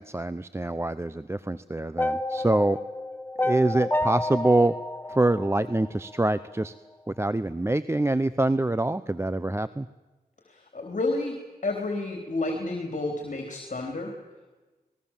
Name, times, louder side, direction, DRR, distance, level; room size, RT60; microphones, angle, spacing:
voice 1, 0.0-2.8 3.4-4.8 5.1-6.7 7.1-9.9, right 2 dB, 15° right, 15 dB, 0.7 m, -25 dB
sound 1, 2.0-6.2, left 1 dB, 10° left, 1.2 m, -30 dB
voice 2, 10.5-11.4 11.6-14.1, left 2 dB, 50° left, 2 dB, 3.7 m, -30 dB
27.5 x 20.5 x 7.4 m, 1.2 s
cardioid pair, 60°, 16 cm